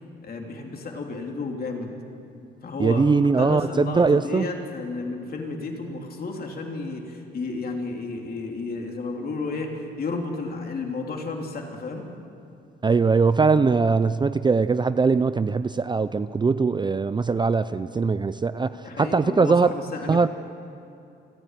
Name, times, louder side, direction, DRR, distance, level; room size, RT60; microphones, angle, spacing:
voice 1, 0.2-1.9 2.6-3.1 3.4-12.1 18.8-20.3, left 3 dB, 50° left, 1 dB, 3.0 m, -32 dB
voice 2, 2.8-4.5 12.8-19.7 20.1-20.3, right 4 dB, 25° right, 13 dB, 0.5 m, -21 dB
29.0 x 10.0 x 9.1 m, 2.6 s
cardioid pair, 90°, 20 cm